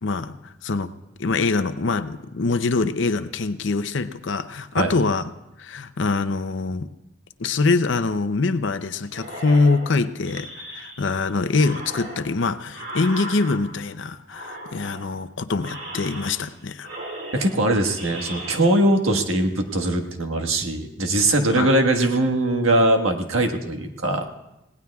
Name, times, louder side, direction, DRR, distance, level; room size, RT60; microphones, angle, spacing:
voice 1, 0.0-0.9 1.2-5.3 5.6-6.9 7.4-16.9 21.5-21.7, left 3 dB, 65° left, 11 dB, 0.6 m, -24 dB
sound 1, 9.1-11.2 11.5-13.9 14.3-15.2 15.6-16.6 16.8-18.6, right 1 dB, 55° right, 2.2 m, -37 dB
voice 2, 17.3-24.3, right 1 dB, 85° right, 4 dB, 1.5 m, -21 dB
30.0 x 18.0 x 2.4 m, 0.94 s
head